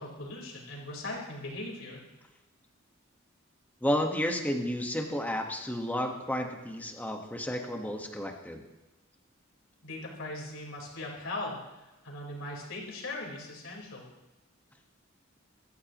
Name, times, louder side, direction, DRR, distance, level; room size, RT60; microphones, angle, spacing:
voice 1, 0.0-2.0 9.8-11.6 12.0-14.0, left 2 dB, 75° left, -2 dB, 4.5 m, -39 dB
voice 2, 3.8-8.7, equal, 10° left, 2 dB, 1.5 m, -32 dB
23.0 x 14.0 x 3.1 m, 1.0 s
head